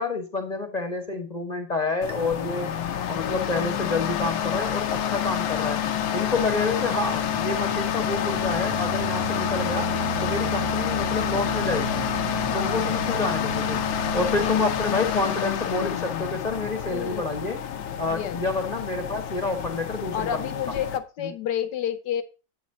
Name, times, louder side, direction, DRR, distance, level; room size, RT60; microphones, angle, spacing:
voice 1, 0.0-2.7 3.1-5.8 6.1-9.9 10.2-12.2 12.5-13.8 14.1-17.6 18.0-20.7 21.2-21.3, left 3 dB, 30° left, 4 dB, 0.9 m, -28 dB
sound 1, 2.0-21.0, left 10 dB, 90° left, 1.4 m, -28 dB
sound 2, 2.1-13.0, right 2 dB, 35° right, 1.9 m, -45 dB
sound 3, 6.4-15.1, right 13 dB, 80° right, 0.8 m, -36 dB
voice 2, 12.4-12.9 14.1-14.7 16.9-17.2 18.1-18.4 20.1-22.2, left 9 dB, 70° left, 11 dB, 1.3 m, -30 dB
8.8 x 4.1 x 5.1 m, 0.32 s
omnidirectional pair, 2.0 m